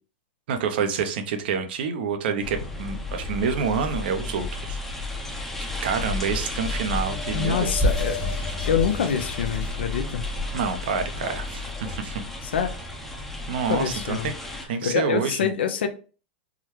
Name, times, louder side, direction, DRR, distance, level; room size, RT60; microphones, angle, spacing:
voice 1, 0.5-4.8 5.6-7.9 10.5-12.2 13.5-14.3 14.7-15.4, right 6 dB, 65° right, 7 dB, 0.6 m, -28 dB
sound 1, 2.4-14.7, left 2 dB, 5° left, 0.6 m, -31 dB
sound 2, 6.4-9.7, left 4 dB, 50° left, 1.1 m, -38 dB
voice 2, 7.3-8.2 8.7-10.2 12.4-12.7 13.7-14.3 14.8-15.9, left 8 dB, 80° left, 7 dB, 0.6 m, -25 dB
sound 3, 8.0-11.1, left 1 dB, 65° left, 1.3 m, -40 dB
3.6 x 2.2 x 3.1 m, 0.37 s
supercardioid pair, 145°, 6 cm